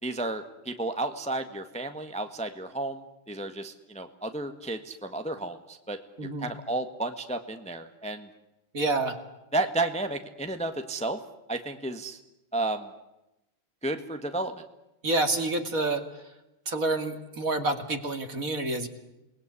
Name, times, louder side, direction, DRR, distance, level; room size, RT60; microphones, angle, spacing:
voice 1, 0.0-8.3 9.5-11.2 11.5-12.2 12.5-12.9 13.8-14.6, right 2 dB, 5° left, 7 dB, 1.4 m, -32 dB
voice 2, 8.7-9.2 15.0-16.0 16.7-18.9, right 2 dB, 40° right, 7 dB, 2.8 m, -28 dB
28.5 x 20.5 x 9.9 m, 0.94 s
omnidirectional pair, 2.2 m